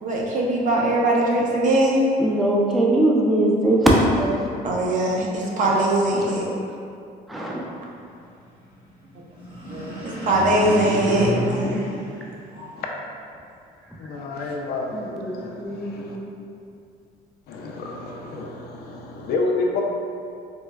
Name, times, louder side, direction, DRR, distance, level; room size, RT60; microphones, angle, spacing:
voice 1, 0.0-2.0 4.6-6.5 9.7-11.8, right 1 dB, 50° right, -3 dB, 0.6 m, -21 dB
voice 2, 2.2-4.4 7.3-7.6 11.0-11.9 14.9-16.3, right 1 dB, ahead, -3 dB, 0.3 m, -22 dB
sound 1, 9.3-12.9, equal, 30° right, 1.1 m, -29 dB
voice 3, 14.0-16.2 17.5-19.8, left 3 dB, 65° left, 0 dB, 0.4 m, -29 dB
4.5 x 2.0 x 2.2 m, 2.5 s
cardioid pair, 110°, 17 cm